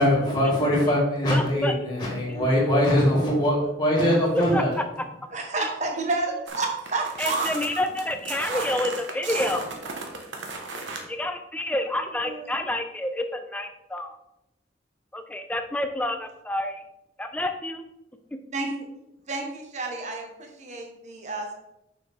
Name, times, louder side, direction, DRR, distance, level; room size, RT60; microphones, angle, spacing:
voice 1, 0.0-4.8, equal, 25° left, -5 dB, 2.2 m, -22 dB
voice 2, 1.3-1.7 5.6-5.7 7.2-9.7 11.1-14.2 15.1-16.8 17.2-17.9, left 1 dB, 10° left, 7 dB, 0.5 m, -29 dB
voice 3, 5.3-7.8 11.6-11.8 12.1-12.5 18.5-18.8 19.3-21.5, right 3 dB, 40° right, 2 dB, 1.2 m, -31 dB
sound 1, 6.5-11.0, right 3 dB, 85° right, 1.3 m, -34 dB
6.7 x 6.3 x 3.5 m, 0.87 s
head